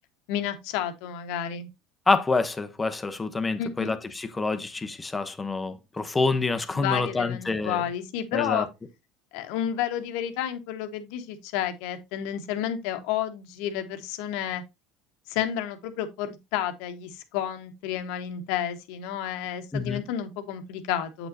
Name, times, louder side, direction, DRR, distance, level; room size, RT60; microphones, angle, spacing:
voice 1, 0.3-1.7 3.6-3.9 6.7-8.7 9.3-14.6 15.3-21.3, left 10 dB, 75° left, 1.2 m, -31 dB
voice 2, 2.1-7.8 8.3-8.7 19.7-20.0, left 3 dB, 15° left, 0.9 m, -27 dB
7.8 x 6.1 x 2.7 m
supercardioid pair, 95°, 0 cm